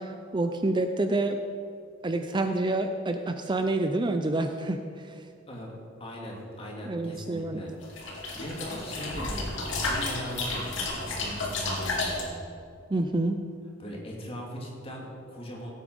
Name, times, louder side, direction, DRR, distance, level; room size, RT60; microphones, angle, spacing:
voice 1, 0.0-1.4 2.0-5.1 6.8-7.6 12.9-13.4, right 2 dB, 25° right, 7 dB, 0.5 m, -28 dB
voice 2, 6.0-12.4 13.8-15.7, equal, 30° left, -2 dB, 2.5 m, -39 dB
sound 1, 7.8-12.2, left 2 dB, 70° left, 2.7 m, -32 dB
16.5 x 8.4 x 5.4 m, 2.3 s
head